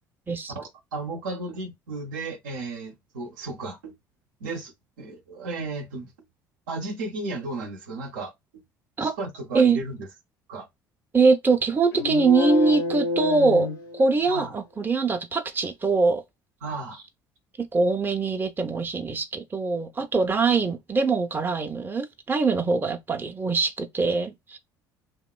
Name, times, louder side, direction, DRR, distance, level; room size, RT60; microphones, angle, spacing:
voice 1, 0.5-3.9 4.4-6.1 6.7-8.6 9.0-10.1 10.5-10.7 14.3-14.5 16.6-17.1, right 3 dB, 75° right, 0.6 m, -34 dB
voice 2, 11.1-13.7 13.9-16.2 17.6-24.6, right 4 dB, 20° right, 0.5 m, -23 dB
sound 1, 11.9-14.5, left 4 dB, 75° left, 0.4 m, -28 dB
3.0 x 2.1 x 2.3 m
figure-of-eight pair, 60°, 11 cm